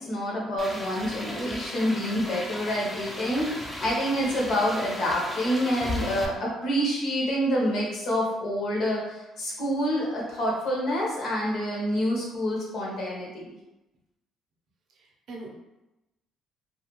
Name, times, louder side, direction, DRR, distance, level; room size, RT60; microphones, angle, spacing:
voice 1, 0.0-13.6, equal, 50° left, -3 dB, 0.8 m, -27 dB
sound 1, 0.6-6.3, left 1 dB, 5° left, 0.3 m, -36 dB
voice 2, 14.9-15.5, right 2 dB, 50° right, 0 dB, 0.5 m, -42 dB
2.3 x 2.2 x 2.9 m, 0.97 s
cardioid pair, 170°, 0 cm